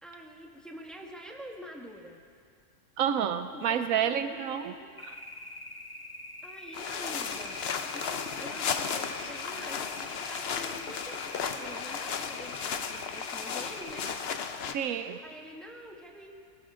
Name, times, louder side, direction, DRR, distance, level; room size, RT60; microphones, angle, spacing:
voice 1, 0.0-2.2 3.5-4.9 6.4-7.6 7.9-9.9 10.2-14.1 15.2-16.3, equal, ahead, 0 dB, 1.3 m, -46 dB
voice 2, 3.0-4.7 5.0-5.1 14.7-15.2, right 8 dB, 75° right, 10 dB, 1.0 m, -29 dB
sound 1, 5.0-14.2, left 2 dB, 30° left, 0.4 m, -44 dB
sound 2, 6.7-14.7, left 6 dB, 55° left, 0.8 m, -35 dB
21.0 x 17.5 x 3.7 m, 2.2 s
omnidirectional pair, 1.5 m